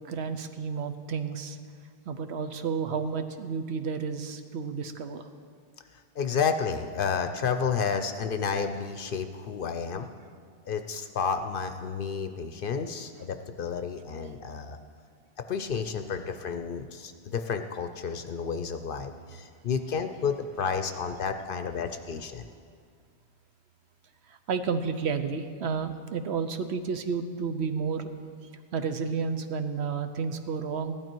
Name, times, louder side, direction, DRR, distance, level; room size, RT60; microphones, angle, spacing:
voice 1, 0.0-1.6 2.1-5.3 24.3-28.1 28.7-30.9, right 5 dB, 70° right, 9 dB, 1.0 m, -31 dB
voice 2, 6.2-10.1 10.7-14.8 15.5-22.5, left 6 dB, 55° left, 8 dB, 0.7 m, -31 dB
15.5 x 12.0 x 4.5 m, 2.1 s
omnidirectional pair, 1.2 m